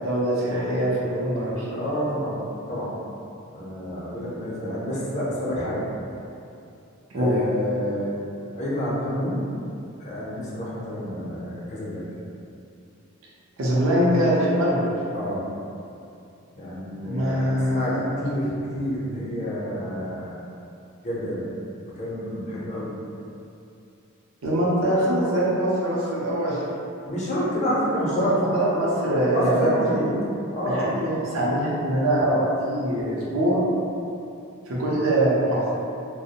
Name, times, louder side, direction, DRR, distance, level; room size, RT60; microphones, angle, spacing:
voice 1, 0.0-1.7 7.1-7.4 13.6-14.8 17.0-18.1 24.4-26.6 28.2-29.8 30.6-33.6 34.7-35.6, right 1 dB, 70° right, -6 dB, 0.6 m, -23 dB
voice 2, 1.6-2.4 2.7-2.9 3.5-5.8 7.1-8.2 8.5-9.4 10.0-12.0 15.1-15.4 16.5-20.3 21.0-21.4 21.8-22.9 27.1-28.3 29.3-30.1 30.5-30.9, equal, 35° left, -7 dB, 0.6 m, -28 dB
2.4 x 2.0 x 2.8 m, 2.6 s
head